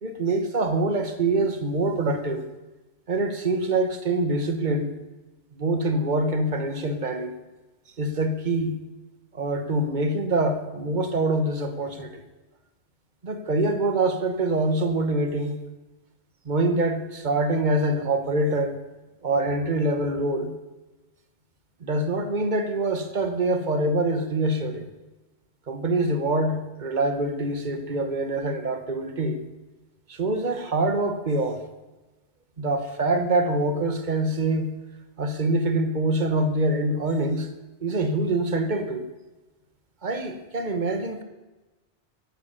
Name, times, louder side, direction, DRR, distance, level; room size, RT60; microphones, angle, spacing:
voice 1, 0.0-2.4 3.1-4.9 5.5-7.4 8.0-8.8 9.3-12.2 13.2-15.6 16.4-18.8 19.2-20.5 21.8-24.9 25.7-29.4 30.1-31.6 32.6-34.7 35.2-37.5 37.8-39.1 40.0-41.2, right 2 dB, 40° right, 7 dB, 1.5 m, -25 dB
12.0 x 11.0 x 6.9 m, 1.1 s
omnidirectional pair, 1.2 m